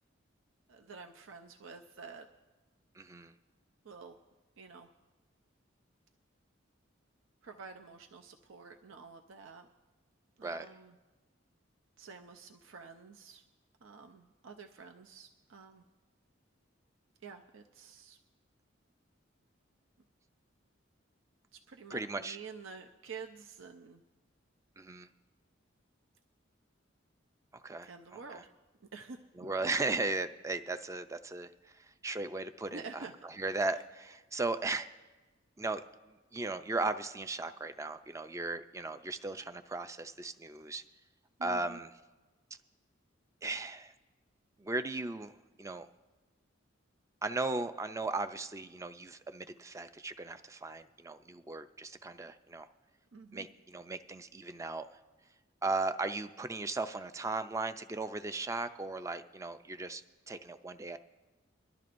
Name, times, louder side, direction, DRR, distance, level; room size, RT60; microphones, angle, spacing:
voice 1, 0.7-2.3 3.8-4.2 4.6-4.9 7.4-9.7 10.4-11.0 12.0-13.4 13.8-15.8 17.2-18.2 21.5-24.0 27.8-28.5 28.8-29.5 32.7-33.1 41.4-41.8 53.1-53.5, right 5 dB, 80° right, 5 dB, 0.6 m, -49 dB
voice 2, 3.0-3.3 10.4-10.7 21.9-22.4 24.8-25.1 27.5-28.4 29.4-32.8 33.4-34.9 35.6-35.8 36.3-40.8 41.4-41.9 43.4-43.9 44.6-45.3 45.6-45.9 47.2-52.7 53.3-54.9 55.6-61.0, right 3 dB, 15° right, 10 dB, 0.4 m, -37 dB
23.0 x 12.0 x 2.5 m, 1.2 s
head